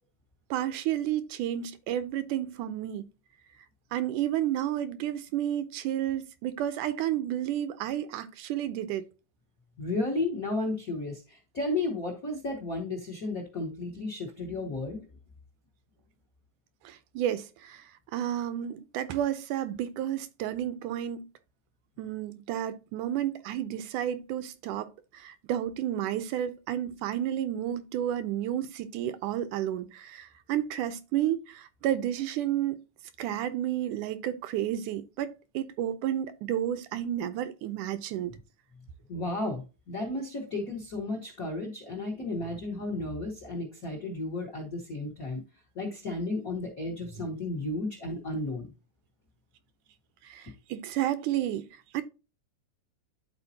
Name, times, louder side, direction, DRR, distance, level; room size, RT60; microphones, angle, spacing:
voice 1, 0.5-3.0 3.9-9.1 16.9-17.8 18.1-21.2 22.0-24.9 25.1-32.8 33.2-38.3 50.2-51.7 51.9-52.0, right 11 dB, 80° right, 1.9 m, -31 dB
voice 2, 9.8-15.0 39.1-45.4 45.7-48.7, left 2 dB, 90° left, 0.7 m, -33 dB
11.5 x 4.2 x 2.7 m
omnidirectional pair, 3.7 m